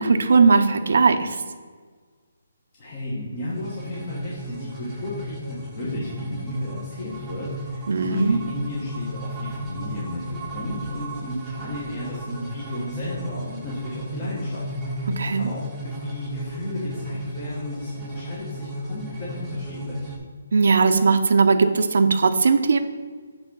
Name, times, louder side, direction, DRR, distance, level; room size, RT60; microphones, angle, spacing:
voice 1, 0.0-1.4 7.9-8.4 15.2-15.5 20.5-22.8, right 4 dB, 60° right, 8 dB, 0.7 m, -18 dB
voice 2, 2.8-20.1, left 1 dB, 25° left, -7 dB, 1.2 m, -34 dB
sound 1, 3.5-20.2, equal, 5° right, 1.0 m, -34 dB
8.2 x 3.5 x 5.5 m, 1.5 s
hypercardioid pair, 175°, 0 cm